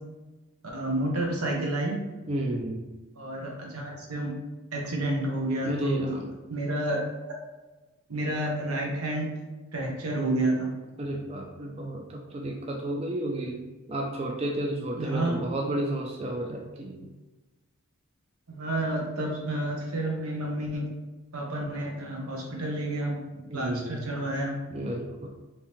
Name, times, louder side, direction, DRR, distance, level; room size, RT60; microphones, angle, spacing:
voice 1, 0.7-2.1 3.2-4.4 4.7-6.2 6.5-7.0 8.1-9.4 9.7-10.7 15.0-15.4 18.5-20.9 21.3-23.2 23.5-24.5, right 1 dB, 90° right, -1 dB, 0.9 m, -30 dB
voice 2, 2.3-2.9 5.6-6.3 11.0-13.6 13.9-17.0 23.5-24.2 24.7-25.3, right 1 dB, 30° right, 0 dB, 0.3 m, -32 dB
3.4 x 2.7 x 3.0 m, 1.2 s
head